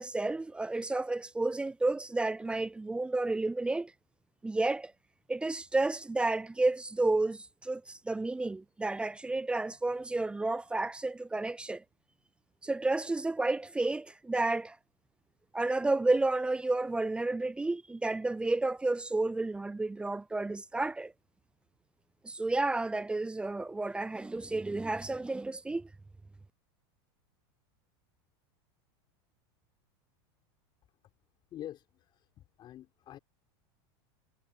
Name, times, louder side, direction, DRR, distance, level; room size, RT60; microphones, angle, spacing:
voice 1, 0.0-3.9 4.4-4.9 5.3-11.8 12.6-14.8 15.5-21.1 22.2-25.9, right 2 dB, 10° right, 0.5 m, -31 dB
voice 2, 31.5-33.2, left 12 dB, 35° left, 5.6 m, -46 dB
supercardioid pair, 135°, 13 cm